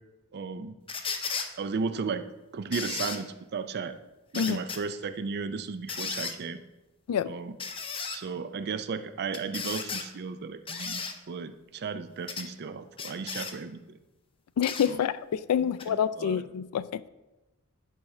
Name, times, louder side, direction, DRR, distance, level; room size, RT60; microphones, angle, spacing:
voice 1, 0.3-0.7 1.6-2.2 2.5-4.0 4.3-6.6 7.2-7.5 8.1-13.8 14.8-15.0 15.6-16.4, right 5 dB, 50° right, 10 dB, 0.4 m, -35 dB
sound 1, 0.9-1.5 2.7-3.2 4.3-4.8 5.9-6.4 7.6-8.2 9.3-10.1 10.7-11.1 12.3-12.5 13.0-13.5 14.6-14.9 15.8-15.9, left 5 dB, 25° left, 0.6 m, -34 dB
voice 2, 14.6-17.0, left 8 dB, 75° left, 16 dB, 0.3 m, -27 dB
10.5 x 3.7 x 4.3 m, 1.1 s
head